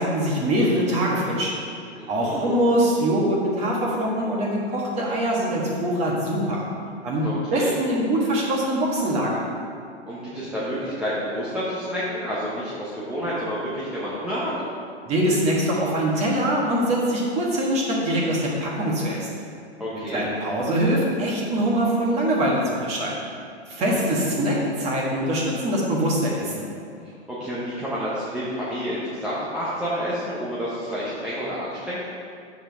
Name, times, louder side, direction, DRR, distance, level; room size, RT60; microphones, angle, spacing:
voice 1, 0.0-1.5 2.1-6.6 7.0-9.4 15.0-19.3 19.9-23.1 23.7-26.6, right 1 dB, 20° right, -3 dB, 1.5 m, -23 dB
voice 2, 2.0-2.5 7.2-7.7 10.1-14.5 19.8-20.3 23.8-24.0 27.3-32.1, equal, 5° right, -10 dB, 0.7 m, -29 dB
10.0 x 7.4 x 3.5 m, 2.3 s
hypercardioid pair, 155°, 34 cm